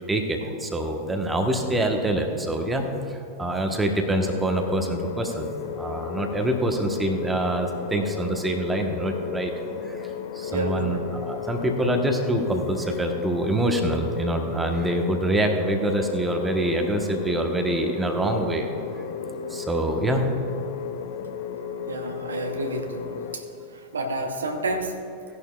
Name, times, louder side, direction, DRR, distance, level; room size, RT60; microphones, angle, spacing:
voice 1, 0.1-5.5 5.8-9.5 9.8-18.7 19.5-20.3, right 1 dB, 10° right, 3 dB, 1.2 m, -25 dB
sound 1, 4.2-23.4, left 7 dB, 55° left, 0.7 m, -34 dB
voice 2, 10.5-11.2 21.8-23.1 23.3-23.4 23.9-25.0, right 2 dB, 70° right, 5 dB, 1.0 m, -29 dB
16.5 x 11.0 x 2.4 m, 2.7 s
figure-of-eight pair, 90°, 0 cm